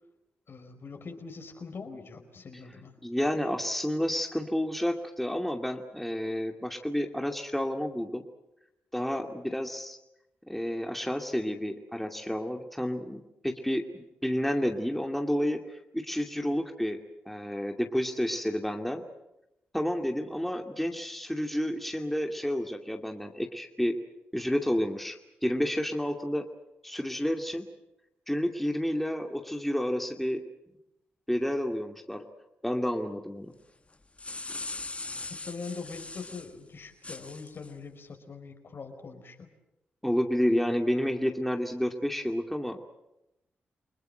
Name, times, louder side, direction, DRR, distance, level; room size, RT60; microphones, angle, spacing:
voice 1, 0.5-3.0 35.3-39.5, left 4 dB, 55° left, 5 dB, 5.1 m, -42 dB
voice 2, 3.0-8.2 8.9-10.0 10.5-17.0 17.3-19.0 19.7-23.9 24.3-25.2 25.4-26.4 26.8-27.7 28.3-30.4 31.3-32.2 32.6-33.5 40.0-42.8, equal, 5° left, 3 dB, 2.5 m, -30 dB
sound 1, 33.9-36.5 37.0-37.7, left 3 dB, 30° left, 1.7 m, -40 dB
29.5 x 20.0 x 7.9 m, 0.88 s
cardioid pair, 55°, 4 cm